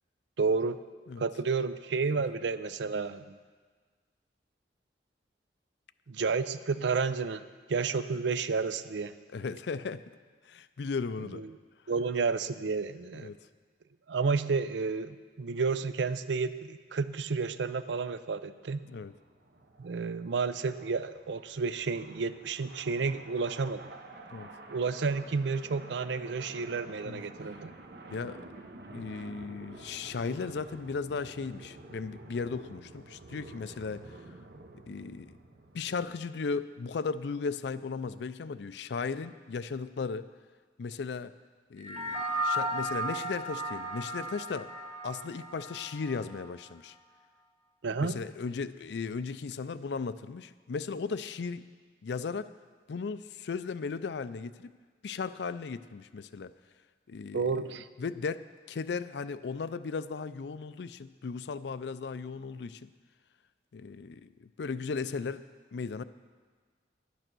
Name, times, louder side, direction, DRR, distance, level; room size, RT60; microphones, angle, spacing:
voice 1, 0.4-0.8 1.2-3.4 6.1-9.1 11.3-11.5 11.9-13.3 14.1-18.9 19.8-23.8 24.7-27.7 47.8-48.2 57.3-57.9, right 4 dB, 80° right, 13 dB, 0.5 m, -31 dB
voice 2, 9.3-10.0 10.5-11.4 13.2-13.4 18.9-19.1 24.3-24.5 27.0-27.2 28.1-28.4 28.9-34.0 34.9-35.4 35.7-40.3 40.8-41.3 41.7-44.7 45.0-46.9 48.0-51.6 52.0-52.5 52.9-54.7 55.0-56.5 57.1-57.7 58.0-58.4 58.7-62.9 63.7-65.4 65.7-66.0, left 5 dB, 75° left, 14 dB, 0.4 m, -36 dB
sound 1, 18.7-36.2, right 2 dB, 60° right, 0.9 m, -50 dB
sound 2, 41.8-46.4, right 1 dB, 40° right, 1.7 m, -35 dB
11.0 x 9.2 x 6.1 m, 1.5 s
head